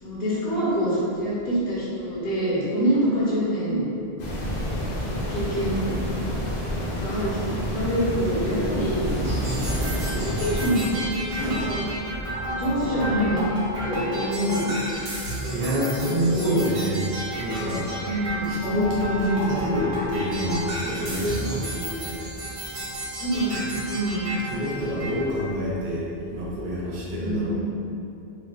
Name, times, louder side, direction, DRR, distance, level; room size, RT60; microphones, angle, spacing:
voice 1, 0.0-3.8 5.0-5.9 6.9-7.4 7.6-9.1 10.1-10.9 11.3-11.8 12.5-13.4 13.8-14.7 15.4-15.7 16.3-16.5 18.0-18.5 23.2-24.3 27.2-27.6, equal, 75° left, -9 dB, 0.9 m, -26 dB
sound 1, 4.2-10.7, equal, 55° left, 0.6 m, -29 dB
sound 2, 8.6-14.2, equal, 10° left, 0.4 m, -35 dB
sound 3, 9.2-25.2, right 1 dB, 40° right, 0.6 m, -32 dB
voice 2, 15.5-17.0 17.4-18.2 18.5-22.3 24.5-27.6, equal, 85° right, -5 dB, 0.9 m, -27 dB
3.8 x 2.1 x 2.2 m, 2.7 s
omnidirectional pair, 1.0 m